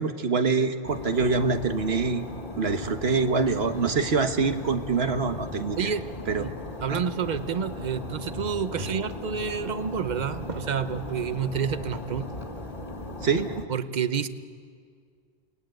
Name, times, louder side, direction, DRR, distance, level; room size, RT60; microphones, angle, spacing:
voice 1, 0.0-2.2 2.6-5.9 6.3-6.4 6.9-7.0 8.8-8.9 13.2-13.5, right 4 dB, 70° right, 7 dB, 1.5 m, -25 dB
sound 1, 0.8-13.6, left 2 dB, 35° left, 2.2 m, -38 dB
voice 2, 6.8-12.3 13.7-14.3, right 7 dB, 45° right, 11 dB, 0.9 m, -29 dB
28.5 x 20.0 x 9.1 m, 2.1 s
omnidirectional pair, 1.1 m